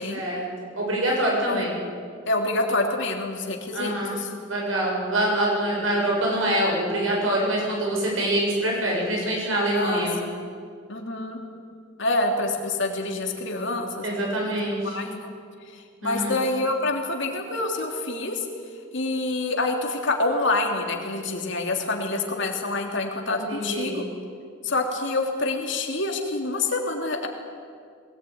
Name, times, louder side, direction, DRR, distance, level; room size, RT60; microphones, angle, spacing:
voice 1, 0.1-1.8 3.7-4.2 4.4-10.2 14.0-15.0 16.0-16.4 23.4-24.0, right 1 dB, 75° right, -2 dB, 7.8 m, -25 dB
voice 2, 2.3-4.3 9.7-10.1 10.9-11.4 12.0-14.2 14.8-15.3 15.7-18.4 18.9-24.0 24.6-27.3, left 2 dB, 60° left, 2 dB, 3.3 m, -27 dB
21.5 x 19.0 x 9.7 m, 2.2 s
head